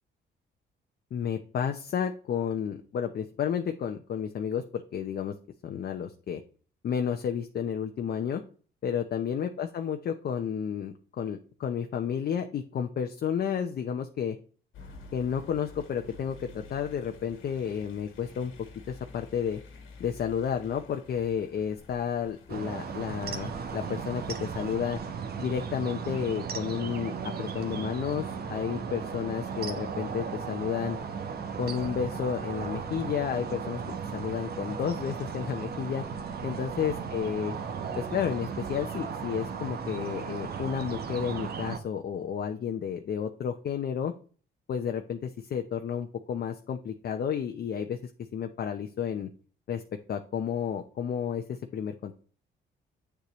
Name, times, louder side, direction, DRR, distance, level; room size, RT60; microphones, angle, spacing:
voice 1, 1.1-5.3 5.6-6.4 6.8-8.4 8.8-14.4 15.1-18.5 18.9-19.6 20.0-25.0 25.4-31.0 31.6-36.0 36.4-37.5 38.0-44.1 44.7-48.0 48.3-49.3 49.7-49.8 50.1-52.1, left 8 dB, 55° left, 5 dB, 0.7 m, -31 dB
sound 1, 14.7-24.8, left 3 dB, 85° left, 1.8 m, -50 dB
sound 2, 22.5-41.8, right 6 dB, 55° right, 1.1 m, -36 dB
8.2 x 6.8 x 3.1 m, 0.40 s
cardioid pair, 90°, 20 cm